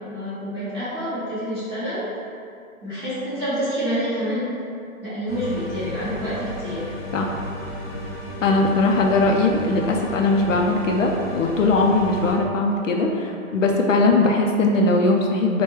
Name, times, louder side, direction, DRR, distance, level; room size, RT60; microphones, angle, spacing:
voice 1, 0.1-2.1 2.8-4.5 5.0-6.9, equal, 20° right, -13 dB, 0.8 m, -27 dB
sound 1, 5.3-12.4, equal, 20° left, 1.2 m, -33 dB
voice 2, 8.4-15.6, left 2 dB, 65° left, 1 dB, 0.5 m, -20 dB
4.6 x 2.2 x 3.0 m, 2.4 s
hypercardioid pair, 170°, 42 cm